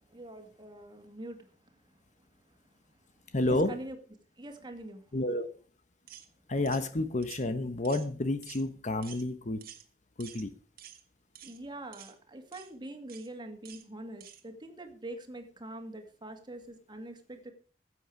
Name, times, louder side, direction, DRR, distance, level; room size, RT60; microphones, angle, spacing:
voice 1, 0.1-1.5 3.4-4.0 4.4-5.1 11.4-17.5, right 1 dB, 25° right, 5 dB, 2.1 m, -44 dB
voice 2, 3.3-3.8 5.1-5.5 6.5-9.7 10.2-10.6, left 2 dB, 45° left, 11 dB, 1.0 m, -30 dB
sound 1, 6.1-6.3 6.7-6.9 7.2-7.4 7.8-8.1 8.4-8.6 9.0-9.2 9.6-9.8 10.2-10.5 10.8-11.0 11.3-11.6 11.9-12.1 12.5-12.7 13.1-13.3 13.6-13.8 14.2-14.4, right 10 dB, 55° right, 1.6 m, -49 dB
15.5 x 8.1 x 4.8 m, 0.38 s
head